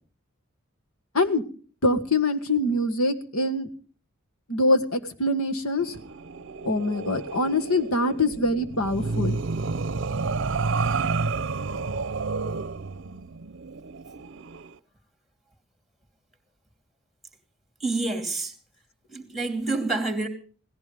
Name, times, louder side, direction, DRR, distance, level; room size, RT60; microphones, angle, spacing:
voice 1, 1.8-3.7 4.5-6.0 6.6-9.4, left 2 dB, 80° left, 7 dB, 1.7 m, -24 dB
sound 1, 5.8-14.7, right 4 dB, 60° right, 0.7 m, -30 dB
voice 2, 17.8-18.5 19.1-20.3, right 3 dB, ahead, 6 dB, 2.7 m, -28 dB
17.5 x 15.0 x 5.3 m, 0.42 s
head